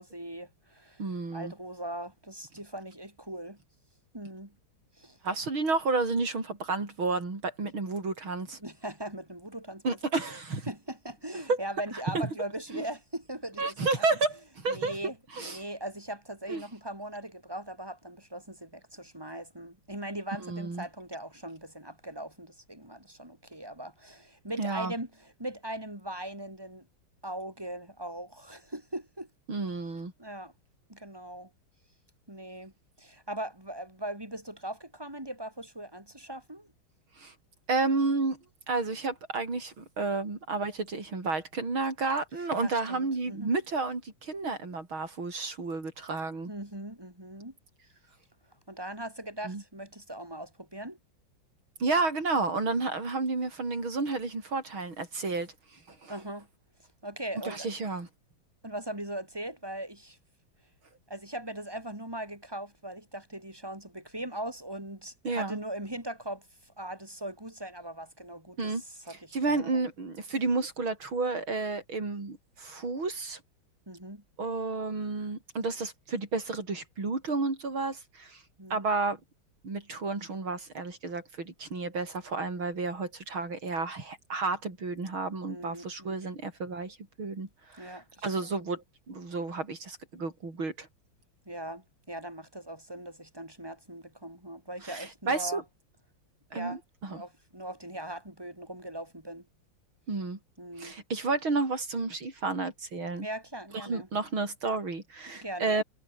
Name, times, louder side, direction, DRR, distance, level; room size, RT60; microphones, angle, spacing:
voice 1, 0.0-1.0 1.3-3.6 4.1-4.6 5.0-5.2 8.6-10.0 10.7-14.0 14.7-26.9 27.2-29.3 30.2-30.5 30.9-31.5 32.3-32.7 33.0-36.7 42.4-43.5 46.5-47.5 48.7-51.0 56.1-56.5 57.0-57.7 58.6-60.2 61.1-69.9 73.9-74.2 78.6-78.8 85.4-86.2 87.8-88.7 91.5-95.6 96.5-96.8 97.1-99.5 100.6-101.0 103.2-104.1 105.3-105.8, right 1 dB, 10° right, 6.0 m, -40 dB
voice 2, 1.0-1.5 5.2-8.6 9.8-10.7 11.5-11.6 12.7-12.8 13.6-15.0 15.3-15.6 16.5-16.6 20.4-20.8 24.6-24.9 29.5-30.1 37.2-37.3 37.7-38.4 38.7-46.5 49.4-49.6 51.8-56.1 57.4-58.1 65.2-65.6 68.6-68.8 69.3-73.4 74.4-78.4 78.7-79.2 79.6-90.9 94.8-95.6 96.5-97.2 100.1-100.4 100.8-103.3 103.7-105.8, right 3 dB, 75° right, 6.3 m, -31 dB
omnidirectional pair, 2.2 m